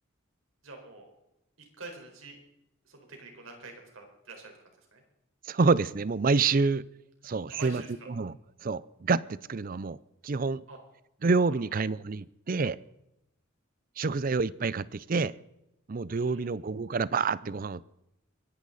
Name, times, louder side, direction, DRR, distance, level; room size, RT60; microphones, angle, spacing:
voice 1, 0.6-1.1 1.8-2.4 2.8-4.5 4.9-5.0 7.5-7.9 10.7-10.8 16.1-16.5, right 3 dB, 85° right, 2 dB, 4.6 m, -46 dB
voice 2, 5.5-6.9 7.2-8.4 8.6-10.0 10.2-10.6 11.2-12.8 14.0-15.3 15.9-17.8, right 4 dB, 45° right, 19 dB, 0.5 m, -27 dB
23.5 x 11.5 x 4.1 m, 0.88 s
head